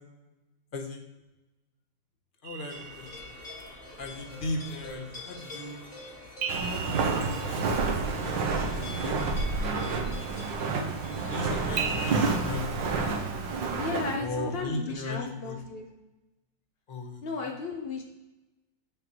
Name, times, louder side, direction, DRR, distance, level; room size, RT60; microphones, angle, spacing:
voice 1, 2.4-3.4 4.0-5.8 6.7-7.9 8.2-9.3 9.6-10.2 11.3-13.4 14.2-15.6 16.9-17.2, left 2 dB, 40° left, 2 dB, 0.8 m, -37 dB
sound 1, 2.4-3.8 6.4-8.4 11.8-12.1, right 5 dB, 60° right, 1.1 m, -36 dB
sound 2, 2.7-12.6, left 2 dB, 25° left, 1.3 m, -45 dB
Walk footsteps, 6.5-14.2, right 4 dB, 80° right, 1.5 m, -29 dB
voice 2, 13.8-15.9 17.2-18.0, left 4 dB, 70° left, 0 dB, 0.5 m, -34 dB
7.4 x 6.6 x 2.9 m, 1.0 s
omnidirectional pair, 2.0 m